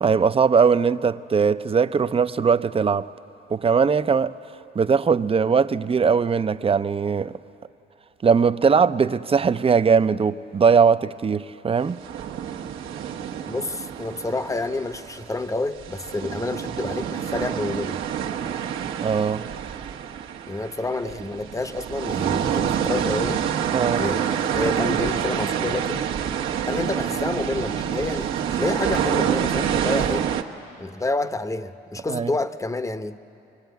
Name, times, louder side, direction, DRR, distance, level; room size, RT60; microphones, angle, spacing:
voice 1, 0.0-3.1 3.5-4.3 4.8-7.3 8.2-12.0 19.0-19.5 23.7-24.1 32.1-32.3, right 6 dB, 30° right, 0.5 m, -20 dB
sound 1, 12.0-15.5 15.8-30.4, right 9 dB, 85° right, 1.2 m, -27 dB
voice 2, 13.4-18.0 20.5-23.5 24.0-26.0 26.7-30.3 30.8-33.2, left 2 dB, 15° left, 0.8 m, -29 dB
24.0 x 22.0 x 9.3 m
cardioid pair, 90°, 20 cm